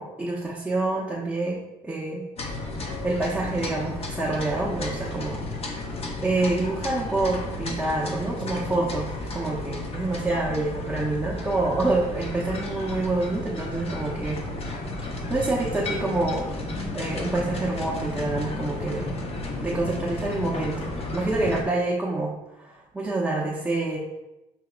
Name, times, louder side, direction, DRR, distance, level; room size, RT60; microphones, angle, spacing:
voice 1, 0.0-2.2 3.0-5.4 6.2-14.4 15.3-16.5 16.9-19.2 19.6-22.3 22.6-24.0, right 2 dB, 5° right, -5 dB, 0.6 m, -27 dB
sound 1, 2.4-21.6, left 2 dB, 35° left, 0.6 m, -33 dB
5.9 x 2.8 x 2.3 m, 0.98 s
cardioid pair, 110°, 17 cm